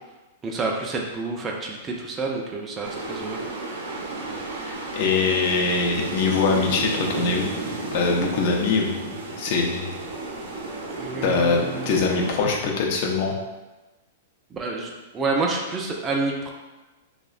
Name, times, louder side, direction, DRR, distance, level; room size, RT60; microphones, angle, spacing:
voice 1, 0.4-3.4 11.0-12.0 14.5-16.5, right 3 dB, 20° right, -1 dB, 0.3 m, -28 dB
sound 1, 2.8-12.3, right 3 dB, 70° right, 0.6 m, -32 dB
voice 2, 4.5-7.5 7.9-9.9 11.2-13.3, left 4 dB, 50° left, 0 dB, 0.5 m, -23 dB
2.8 x 2.1 x 2.4 m, 1.1 s
hypercardioid pair, 145°, 0 cm